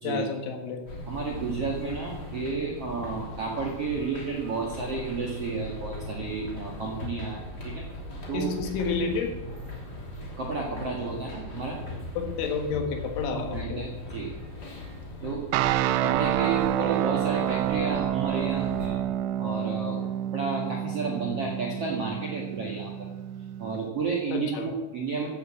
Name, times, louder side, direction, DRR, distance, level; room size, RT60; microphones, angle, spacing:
voice 1, 0.0-0.8 8.3-9.3 12.2-13.9 24.3-24.7, left 5 dB, 75° left, 3 dB, 4.1 m, -30 dB
sound 1, 0.9-18.9, left 1 dB, 25° left, 2.8 m, -39 dB
voice 2, 1.1-7.8 8.3-8.5 10.4-11.8 13.3-14.3 15.2-15.4 16.0-19.0 19.4-20.0 20.3-23.1 23.6-25.3, right 4 dB, 50° right, -1 dB, 1.8 m, -31 dB
sound 2, 15.5-23.8, right 12 dB, 80° right, 2.9 m, -28 dB
15.5 x 8.8 x 7.7 m, 1.1 s
omnidirectional pair, 5.7 m